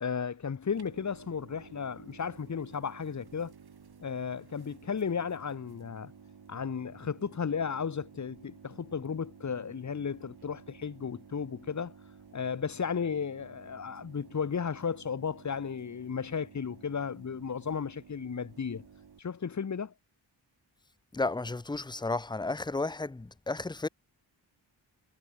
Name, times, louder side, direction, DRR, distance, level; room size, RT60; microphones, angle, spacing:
voice 1, 0.0-3.5 4.0-6.1 6.5-11.9 12.3-18.9 19.2-19.9, left 6 dB, 35° left, 1.1 m, -34 dB
sound 1, 0.7-19.2, right 6 dB, 50° right, 2.1 m, -54 dB
voice 2, 21.1-23.9, left 3 dB, 10° left, 0.6 m, -33 dB
cardioid pair, 50°, 47 cm